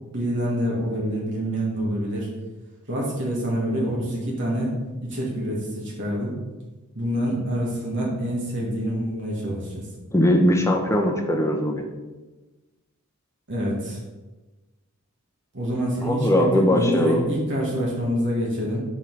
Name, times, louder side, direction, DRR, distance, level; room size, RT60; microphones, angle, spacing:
voice 1, 0.1-2.3 2.9-4.7 5.0-6.4 7.0-9.9 13.5-14.0 15.5-18.8, equal, 55° right, -4 dB, 1.9 m, -26 dB
voice 2, 10.1-11.9 16.0-17.3, left 1 dB, 15° left, 1 dB, 0.9 m, -20 dB
6.9 x 5.5 x 4.7 m, 1.2 s
head